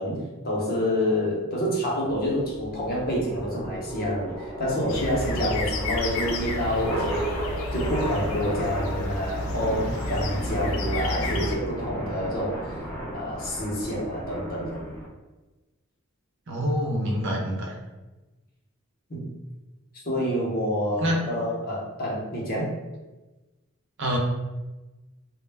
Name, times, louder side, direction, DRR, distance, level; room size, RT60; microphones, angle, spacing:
voice 1, 0.0-7.3 7.7-12.8 13.1-14.8 19.1-19.2 20.0-22.7, equal, 45° left, -4 dB, 0.7 m, -28 dB
sound 1, 2.1-15.1, right 1 dB, 5° left, 0.6 m, -35 dB
sound 2, 4.9-11.6, left 2 dB, 70° left, 0.3 m, -31 dB
voice 2, 16.5-17.7 21.0-21.3 24.0-24.2, equal, 60° right, -1 dB, 0.5 m, -26 dB
2.1 x 2.1 x 3.2 m, 1.1 s
head